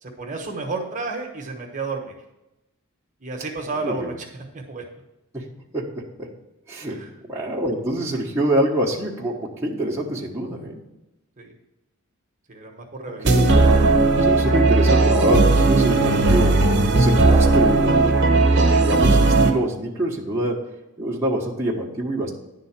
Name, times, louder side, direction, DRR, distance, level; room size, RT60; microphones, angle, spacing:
voice 1, 0.0-2.2 3.2-4.8 6.7-7.1 11.4-11.5 12.5-13.5, right 3 dB, 35° right, 2 dB, 1.1 m, -32 dB
voice 2, 3.8-4.1 5.3-5.4 5.7-5.9 6.2-6.3 6.7-7.0 7.3-10.7 13.2-13.8 14.2-16.6 16.9-18.1 18.7-20.6 21.0-22.3, right 1 dB, 15° right, -4 dB, 1.1 m, -25 dB
sound 1, 13.3-19.5, right 3 dB, 55° right, 1.1 m, -16 dB
10.5 x 3.9 x 7.2 m, 0.94 s
head